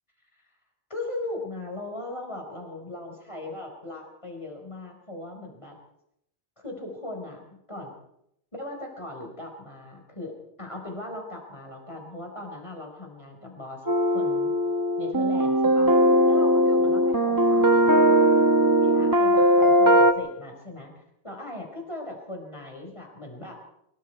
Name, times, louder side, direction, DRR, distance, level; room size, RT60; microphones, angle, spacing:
voice 1, 0.9-5.8 6.6-7.9 8.5-14.5 15.0-15.9 16.3-18.4 18.8-23.6, left 2 dB, 25° left, 1 dB, 4.8 m, -38 dB
sound 1, 13.9-20.1, equal, 20° right, 1.1 m, -19 dB
24.5 x 23.0 x 4.6 m, 0.77 s
omnidirectional pair, 1.2 m